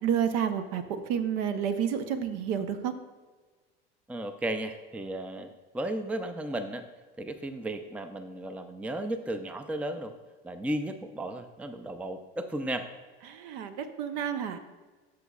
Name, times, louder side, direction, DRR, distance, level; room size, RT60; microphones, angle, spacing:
voice 1, 0.0-2.9 13.3-14.6, right 8 dB, 65° right, 9 dB, 0.8 m, -30 dB
voice 2, 4.1-6.8 7.2-10.1 10.4-12.9, right 1 dB, 5° right, 8 dB, 0.5 m, -34 dB
12.5 x 6.3 x 2.4 m, 1.3 s
hypercardioid pair, 80°, 31 cm